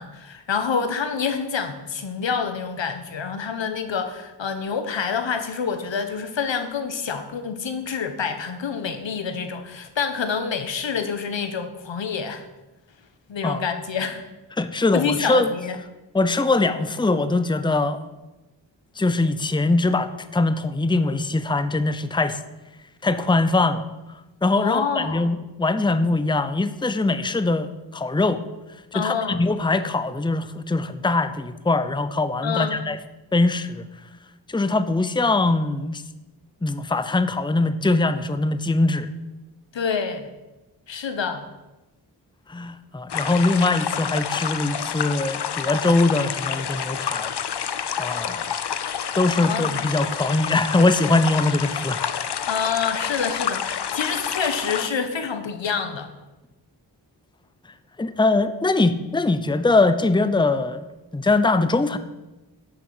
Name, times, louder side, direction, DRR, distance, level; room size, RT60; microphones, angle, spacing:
voice 1, 0.0-12.4 13.3-14.2 14.9-15.8 24.6-25.3 28.9-29.4 32.4-32.8 39.7-40.3 40.9-41.5 49.4-49.7 52.5-56.1, left 6 dB, 80° left, 8 dB, 1.4 m, -27 dB
voice 2, 14.6-15.5 16.1-18.0 19.0-22.4 23.0-23.9 24.4-28.4 28.9-33.0 33.3-33.9 34.5-36.0 36.6-39.1 42.5-47.3 48.0-48.5 49.2-52.0 58.0-60.8 61.1-62.0, left 2 dB, 10° left, 12 dB, 0.7 m, -22 dB
sound 1, 43.1-54.9, left 8 dB, 65° left, 0.8 m, -28 dB
11.0 x 6.8 x 7.8 m, 1.1 s
wide cardioid pair, 75°, 44 cm